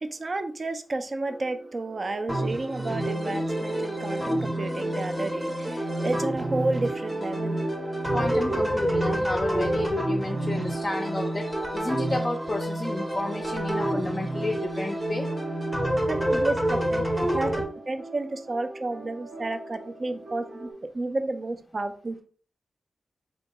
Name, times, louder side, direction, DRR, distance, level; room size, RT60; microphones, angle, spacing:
voice 1, 0.0-7.6 16.1-17.0 17.3-20.7 20.9-22.2, right 2 dB, 40° right, 8 dB, 0.4 m, -31 dB
sound 1, 1.3-20.7, right 2 dB, 85° right, 0.9 m, -41 dB
sound 2, 2.3-17.6, right 1 dB, 10° right, 0.7 m, -28 dB
voice 2, 8.1-11.5 11.7-15.3, left 2 dB, 30° left, 2 dB, 0.4 m, -31 dB
3.6 x 2.2 x 4.0 m, 0.43 s
wide cardioid pair, 155°, 0 cm